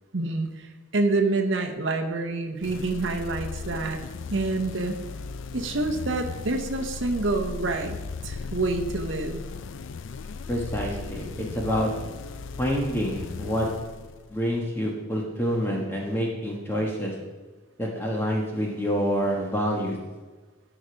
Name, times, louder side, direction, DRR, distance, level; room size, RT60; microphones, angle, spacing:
voice 1, 0.1-4.0 4.3-5.0 5.5-9.4, right 3 dB, 65° right, 3 dB, 0.8 m, -27 dB
sound 1, 2.6-14.5, left 4 dB, 70° left, 0.4 m, -37 dB
voice 2, 10.5-11.9 12.6-13.7 14.3-17.1 17.8-20.0, equal, 10° left, -2 dB, 1.2 m, -27 dB
13.0 x 5.0 x 5.1 m, 1.3 s
head